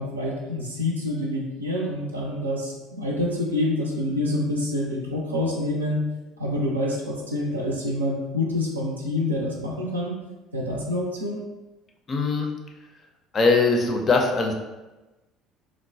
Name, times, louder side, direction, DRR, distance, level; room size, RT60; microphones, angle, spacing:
voice 1, 0.0-6.0 6.4-10.2 10.5-11.4, left 1 dB, 85° right, -2 dB, 0.4 m, -27 dB
voice 2, 12.1-12.5 13.3-14.5, left 3 dB, 35° left, 2 dB, 0.5 m, -21 dB
3.0 x 2.1 x 2.6 m, 1.1 s
figure-of-eight pair, 60°, 0 cm